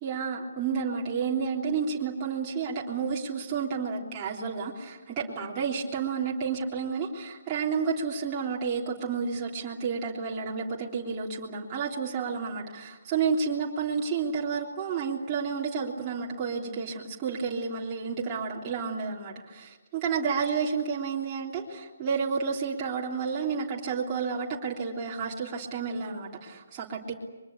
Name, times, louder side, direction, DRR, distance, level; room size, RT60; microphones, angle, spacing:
voice 1, 0.0-27.1, right 5 dB, 20° right, -5 dB, 3.3 m, -31 dB
25.0 x 23.0 x 8.4 m, 1.2 s
hypercardioid pair, 155°, 0 cm